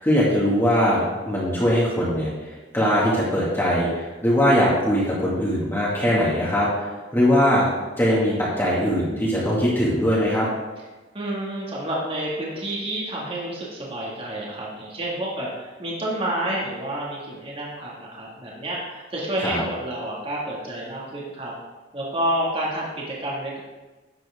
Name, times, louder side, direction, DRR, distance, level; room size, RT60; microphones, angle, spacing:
voice 1, 0.0-6.7 7.1-7.7 8.0-10.5 19.4-19.6, equal, 15° left, -8 dB, 2.2 m, -21 dB
voice 2, 11.1-21.5 21.9-23.6, right 1 dB, 30° right, -4 dB, 2.1 m, -29 dB
11.0 x 7.6 x 3.7 m, 1.2 s
head